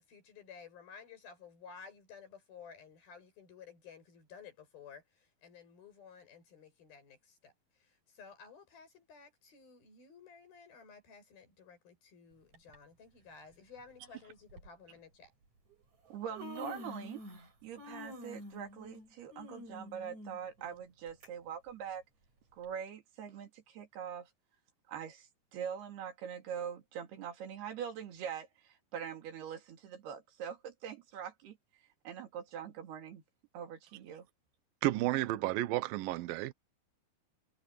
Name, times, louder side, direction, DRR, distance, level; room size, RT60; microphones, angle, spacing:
voice 1, 0.0-15.3, left 6 dB, 70° left, 9.2 m, -54 dB
Human voice, 12.5-12.8 13.8-13.9 14.5-14.7 15.7-15.8 16.1-17.5 17.8-21.3 21.7-21.8 22.6-22.7, left 2 dB, 45° right, 8.8 m, -48 dB
voice 2, 16.1-17.2 17.6-22.0 22.5-24.3 24.9-31.6 32.0-33.2 33.5-34.3, right 8 dB, 90° right, 4.6 m, -43 dB
voice 3, 34.8-36.5, right 16 dB, 75° right, 2.5 m, -32 dB
omnidirectional pair, 4.4 m